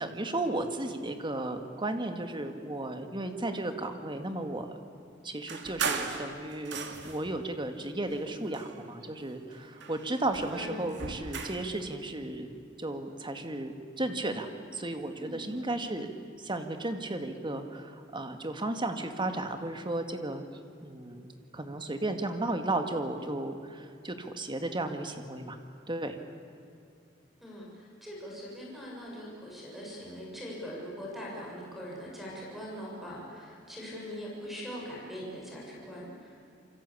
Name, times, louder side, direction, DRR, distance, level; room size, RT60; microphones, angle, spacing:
voice 1, 0.0-4.8 5.2-16.1 16.4-20.4 20.8-25.6 25.9-26.2, right 2 dB, 25° right, 6 dB, 2.0 m, -34 dB
sound 1, 5.5-7.3 8.0-9.2 9.5-11.7, right 5 dB, 65° right, 2.5 m, -37 dB
voice 2, 15.2-15.7 27.4-36.5, equal, ahead, -4 dB, 6.7 m, -42 dB
28.0 x 24.5 x 8.6 m, 2.5 s
head